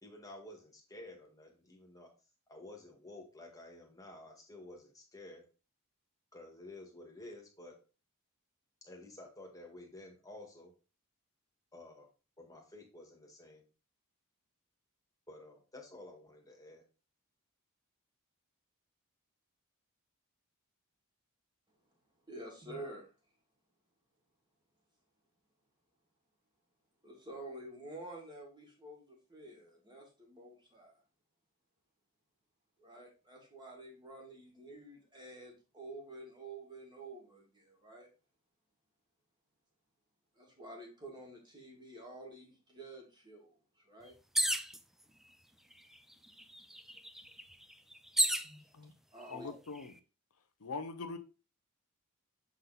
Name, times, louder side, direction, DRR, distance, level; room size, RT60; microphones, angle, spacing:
voice 1, 0.0-2.1 2.5-5.4 6.3-7.8 8.8-10.7 11.7-12.1 12.4-13.6 15.3-16.8, left 2 dB, 15° left, 1.8 m, -52 dB
voice 2, 22.3-23.1 27.0-31.0 32.8-38.1 40.3-44.1 48.4-48.7 49.1-49.5, right 2 dB, 20° right, 2.1 m, -49 dB
sound 1, 44.3-44.8 45.7-45.8 46.1-48.5 49.3-49.8, right 1 dB, ahead, 0.4 m, -32 dB
voice 3, 49.3-49.9 50.6-51.2, left 4 dB, 80° left, 0.8 m, -42 dB
7.3 x 4.0 x 4.0 m
head